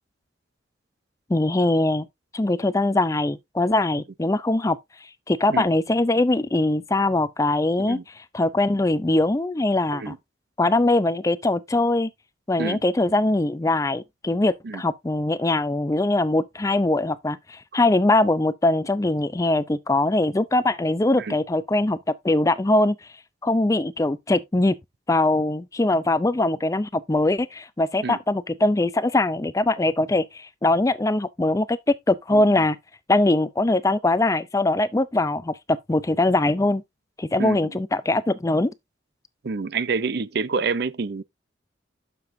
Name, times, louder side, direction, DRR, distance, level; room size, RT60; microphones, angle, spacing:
voice 1, 1.3-2.1 2.3-4.8 5.3-10.1 10.6-12.1 12.5-22.0 22.2-23.0 23.4-24.8 25.1-32.8 33.1-36.8 37.2-38.7, left 2 dB, 15° left, 0.4 m, -22 dB
voice 2, 39.4-41.2, right 4 dB, 55° right, 0.5 m, -27 dB
9.4 x 6.9 x 2.6 m
head